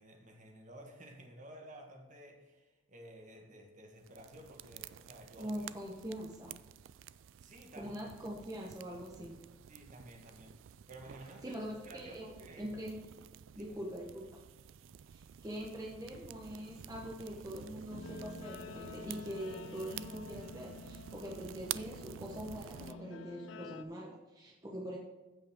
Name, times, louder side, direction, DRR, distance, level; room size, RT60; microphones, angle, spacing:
voice 1, 0.0-5.7 7.4-7.9 9.7-11.6 11.8-12.7 13.6-13.8, right 1 dB, 40° right, 2 dB, 1.5 m, -53 dB
sound 1, 4.0-22.9, right 10 dB, 80° right, 0.4 m, -50 dB
voice 2, 5.4-6.5 7.7-9.4 11.4-12.3 12.6-13.0 13.5-14.4 15.1-25.0, equal, 20° right, -2 dB, 1.0 m, -43 dB
Guitar, 17.9-23.8, left 4 dB, 85° left, 0.6 m, -49 dB
15.0 x 5.4 x 3.7 m, 1.2 s
head